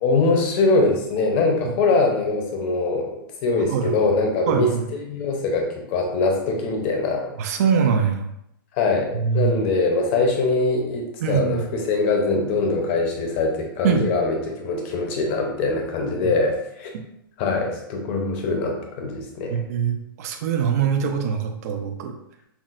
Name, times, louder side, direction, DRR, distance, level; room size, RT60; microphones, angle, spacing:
voice 1, 0.0-4.7 5.0-7.3 8.7-16.9 17.4-19.6, left 3 dB, 30° left, 2 dB, 0.6 m, -22 dB
voice 2, 4.5-4.8 7.4-8.3 9.1-9.6 11.2-11.6 13.8-14.1 16.1-16.3 16.9-17.0 19.5-22.2, right 7 dB, 40° right, 4 dB, 0.4 m, -23 dB
5.7 x 2.0 x 2.5 m, 0.77 s
hypercardioid pair, 160°, 12 cm